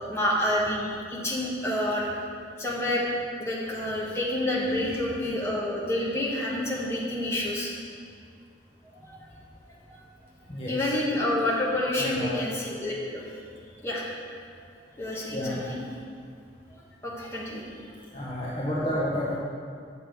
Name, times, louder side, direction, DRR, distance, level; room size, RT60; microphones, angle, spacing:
voice 1, 0.0-2.1 2.6-3.0 3.4-7.7 9.1-9.2 9.9-10.0 10.7-13.2 13.8-14.0 15.0-15.8 17.0-17.6, left 1 dB, 15° left, -5 dB, 1.4 m, -28 dB
voice 2, 4.7-5.3 10.5-10.9 12.0-12.3 15.3-15.6 18.1-19.4, left 1 dB, 30° left, -7 dB, 1.0 m, -31 dB
8.1 x 6.7 x 5.0 m, 2.2 s
head